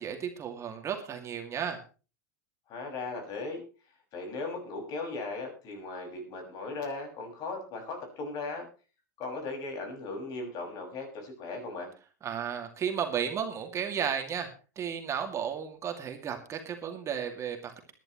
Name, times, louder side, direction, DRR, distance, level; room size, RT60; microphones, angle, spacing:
voice 1, 0.0-1.8 12.2-14.5 14.8-17.9, right 8 dB, 30° right, 5 dB, 2.4 m, -34 dB
voice 2, 2.7-3.6 4.1-8.7 9.2-11.9, left 3 dB, 45° left, 2 dB, 6.1 m, -37 dB
22.0 x 11.0 x 3.1 m, 0.34 s
hypercardioid pair, 90°, 9 cm